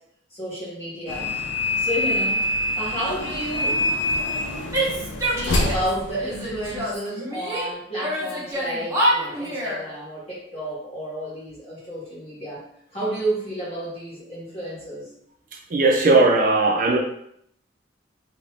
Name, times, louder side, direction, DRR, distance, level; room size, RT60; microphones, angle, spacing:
voice 1, 0.3-1.3 1.8-3.8 5.3-12.6 12.9-15.1, right 1 dB, 30° left, -8 dB, 1.4 m, -31 dB
sound 1, 1.1-6.9, left 1 dB, 75° left, 0.5 m, -26 dB
Female speech woman speaking / Yell, 4.7-5.9 6.2-7.7 8.0-9.8, right 1 dB, 15° right, 0.8 m, -26 dB
voice 2, 15.7-17.0, right 3 dB, 45° right, 2 dB, 0.4 m, -17 dB
2.7 x 2.6 x 3.2 m, 0.72 s
head